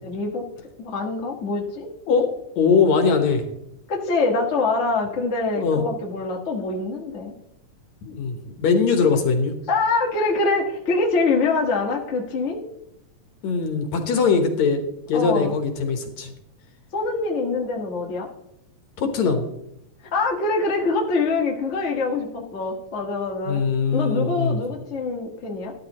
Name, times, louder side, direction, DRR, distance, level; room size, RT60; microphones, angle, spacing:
voice 1, 0.0-0.5 0.8-1.9 3.9-7.3 9.7-12.6 15.1-15.5 16.9-18.3 20.1-23.6 23.9-25.7, left 3 dB, 30° left, 0 dB, 1.4 m, -24 dB
voice 2, 2.6-3.4 5.6-5.8 8.0-9.5 13.4-14.8 15.1-16.3 19.0-19.4 23.5-24.6, left 5 dB, 70° left, 5 dB, 2.4 m, -21 dB
13.0 x 12.5 x 3.0 m, 0.81 s
omnidirectional pair, 3.4 m